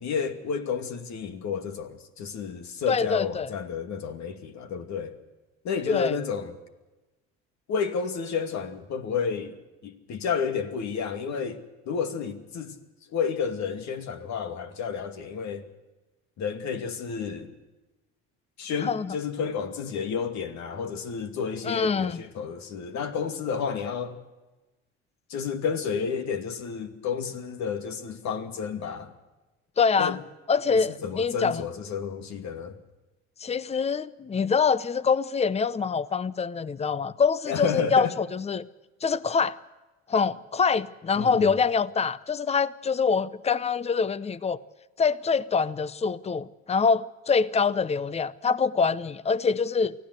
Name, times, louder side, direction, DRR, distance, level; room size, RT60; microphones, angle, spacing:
voice 1, 0.0-5.1 5.6-6.5 7.7-9.6 9.8-12.8 13.1-15.7 16.4-17.5 18.6-24.2 25.3-29.1 30.0-30.2 30.7-32.8 37.5-38.2 41.1-41.5, left 6 dB, 60° left, 2.6 m, -31 dB
voice 2, 2.9-3.5 5.9-6.2 18.8-19.1 21.6-22.2 29.8-30.2 30.5-31.6 33.4-38.7 39.0-39.6 40.1-44.6 45.0-49.9, left 5 dB, 20° left, 0.8 m, -25 dB
24.5 x 16.0 x 8.1 m
supercardioid pair, 85°, 32 cm